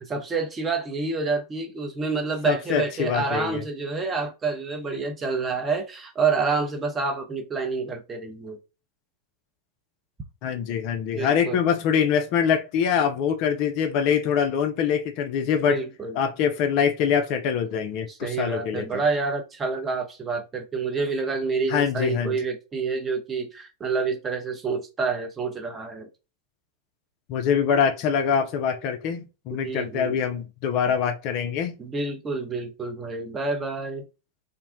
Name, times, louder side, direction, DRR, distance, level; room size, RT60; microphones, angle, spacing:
voice 1, 0.0-8.6 11.1-11.6 15.7-16.2 18.1-26.1 29.5-30.2 31.8-34.0, right 4 dB, 20° right, 0.5 m, -28 dB
voice 2, 2.4-3.6 10.4-15.8 16.2-19.0 21.7-22.3 27.3-31.8, left 7 dB, 45° left, 0.3 m, -24 dB
2.5 x 2.1 x 2.5 m
figure-of-eight pair, 90°, 0 cm